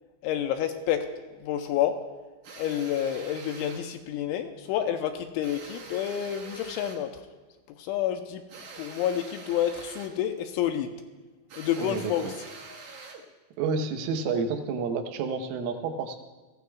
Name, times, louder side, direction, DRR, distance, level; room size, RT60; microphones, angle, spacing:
voice 1, 0.2-1.1 1.4-2.0 2.6-7.1 7.8-8.4 8.8-10.9 11.6-12.4, left 10 dB, 85° left, 6 dB, 2.8 m, -29 dB
sound 1, 2.4-3.9 5.4-7.1 8.5-10.2 11.5-13.3, right 4 dB, 65° right, 1.9 m, -45 dB
voice 2, 11.8-12.3 13.6-16.2, right 5 dB, 80° right, 5 dB, 3.6 m, -30 dB
22.0 x 15.5 x 2.4 m, 1.3 s
omnidirectional pair, 5.8 m